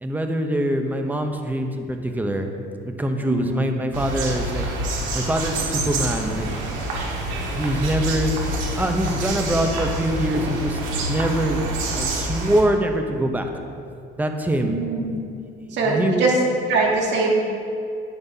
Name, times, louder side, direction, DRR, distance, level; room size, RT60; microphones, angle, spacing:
voice 1, 0.0-2.5 2.8-4.7 5.1-6.5 7.5-8.3 8.8-11.6 11.9-13.5 14.2-14.8 15.7-16.3, right 1 dB, 10° right, 5 dB, 0.7 m, -24 dB
voice 2, 3.2-3.6 14.6-15.2 15.7-16.3 16.7-17.4, right 3 dB, 65° right, -3 dB, 2.2 m, -22 dB
sound 1, 3.9-12.6, right 1 dB, 85° right, 1.7 m, -27 dB
11.0 x 8.6 x 2.8 m, 2.5 s
cardioid pair, 115°, 20 cm